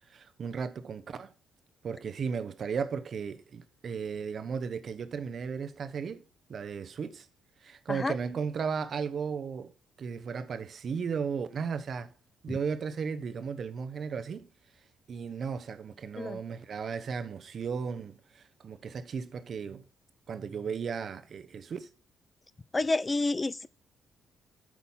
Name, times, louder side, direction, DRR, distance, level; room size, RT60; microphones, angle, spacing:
voice 1, 0.1-1.3 1.8-6.2 6.5-7.3 7.6-9.7 10.0-12.1 12.4-14.5 15.1-19.8 20.3-21.9, right 6 dB, 50° right, 1.0 m, -35 dB
voice 2, 22.7-23.7, left 2 dB, 20° left, 0.4 m, -29 dB
8.4 x 6.1 x 5.7 m
cardioid pair, 90°, 0 cm